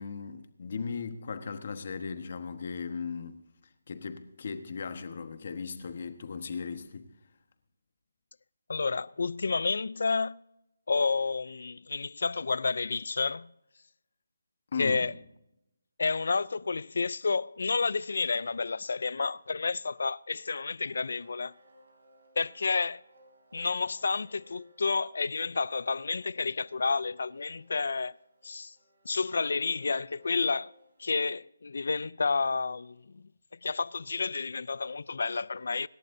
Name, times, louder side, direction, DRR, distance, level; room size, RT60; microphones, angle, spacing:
voice 1, 0.0-3.4 3.9-7.1 14.7-15.1, left 5 dB, 35° left, 1.2 m, -37 dB
voice 2, 8.7-10.4 10.9-13.5 14.8-15.1 16.0-21.5 22.4-23.0 23.5-28.1 28.4-28.7 29.0-30.7 31.0-33.2 33.6-35.9, left 4 dB, 55° left, 0.4 m, -30 dB
sound 1, 20.8-31.3, equal, 55° right, 4.0 m, -62 dB
25.5 x 12.0 x 2.7 m
hypercardioid pair, 175°, 0 cm